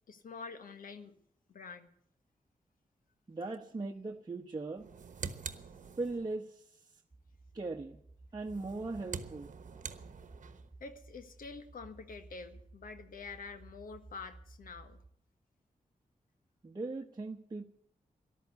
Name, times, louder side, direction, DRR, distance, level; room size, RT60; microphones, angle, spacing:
voice 1, 0.1-1.1 1.5-1.9 10.8-15.0, left 4 dB, 85° left, 8 dB, 1.5 m, -47 dB
voice 2, 3.3-4.8 6.0-6.9 7.5-8.0 8.3-9.5 16.6-17.6, right 3 dB, 30° right, 0 dB, 1.1 m, -39 dB
sound 1, 4.8-6.4 8.4-10.7, right 6 dB, 65° right, 1.1 m, -45 dB
sound 2, 7.1-15.1, right 2 dB, 10° right, 2.1 m, -56 dB
13.5 x 12.0 x 8.2 m, 0.69 s
wide cardioid pair, 100°, 14 cm